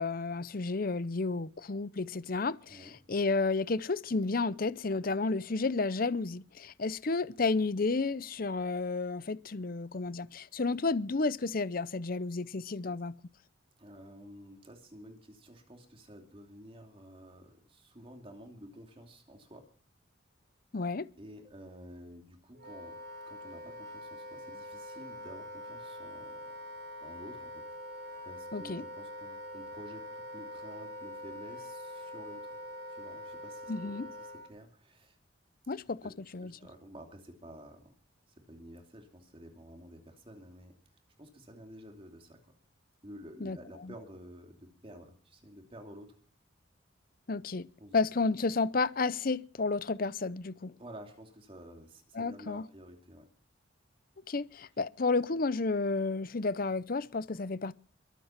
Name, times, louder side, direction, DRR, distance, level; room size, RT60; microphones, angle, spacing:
voice 1, 0.0-13.2 20.7-21.1 28.5-28.8 33.7-34.1 35.7-36.0 36.3-36.5 43.4-43.6 43.8-43.9 47.3-47.7 47.9-50.7 52.1-52.6 54.3-57.7, left 3 dB, 50° left, 0.7 m, -31 dB
voice 2, 13.8-19.7 21.2-23.0 23.3-26.5 27.0-32.6 32.9-35.2 35.6-35.7 36.0-36.1 36.4-37.9 38.4-40.8 41.2-42.5 43.0-46.2 47.8-48.0 50.8-53.3, equal, 30° right, 2.9 m, -51 dB
Wind instrument woodwind instrument, 22.5-34.5, equal, 50° right, 3.8 m, -44 dB
22.5 x 8.4 x 5.9 m
head